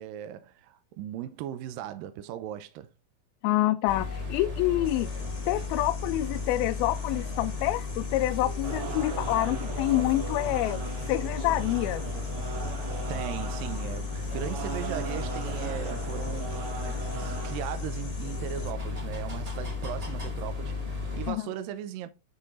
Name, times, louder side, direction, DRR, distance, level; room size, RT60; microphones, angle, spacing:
voice 1, 0.0-2.9 13.1-22.1, right 11 dB, 80° right, 2.2 m, -38 dB
voice 2, 3.4-5.1 5.5-10.8 11.1-12.0 21.3-21.4, left 16 dB, 85° left, 2.5 m, -27 dB
sound 1, 3.9-21.3, left 4 dB, 40° right, 0.5 m, -34 dB
sound 2, 4.8-18.7, left 6 dB, 60° left, 1.2 m, -50 dB
sound 3, 8.6-17.6, right 5 dB, 55° right, 2.7 m, -39 dB
9.9 x 4.3 x 3.7 m
omnidirectional pair, 4.4 m